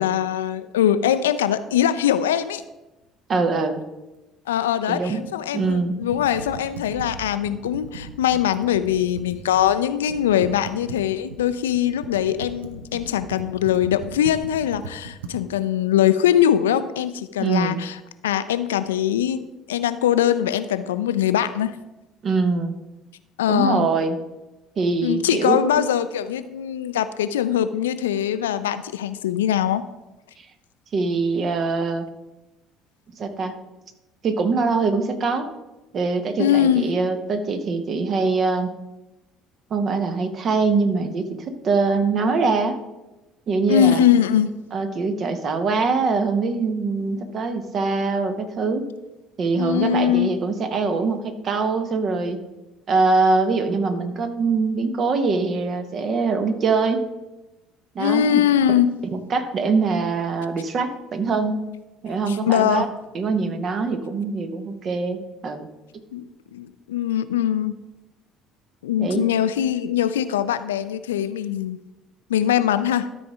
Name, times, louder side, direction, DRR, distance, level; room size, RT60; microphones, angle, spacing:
voice 1, 0.0-2.6 4.5-18.0 18.2-21.7 23.4-23.9 25.0-29.8 36.4-36.8 43.7-44.5 49.5-50.3 58.0-58.9 62.3-62.8 66.1-66.2 66.5-67.7 68.8-71.8 72.3-73.1, left 10 dB, 70° left, 12 dB, 0.4 m, -22 dB
voice 2, 3.3-3.8 4.9-5.2 5.5-6.0 17.4-17.8 22.2-22.7 23.5-24.2 24.8-25.8 30.4-30.5 30.9-32.1 33.2-33.6 34.2-35.5 35.9-38.7 39.7-42.8 43.5-44.0 44.7-48.9 49.4-52.4 52.9-57.1 57.9-58.4 59.1-61.6 62.0-62.9 63.1-65.7 69.0-69.2, right 4 dB, 40° right, 9 dB, 1.0 m, -23 dB
Computer keyboard, 5.6-9.8 10.1-15.4, right 4 dB, 75° right, 0.6 m, -38 dB
13.0 x 4.3 x 4.8 m, 1.0 s
figure-of-eight pair, 55°, 0 cm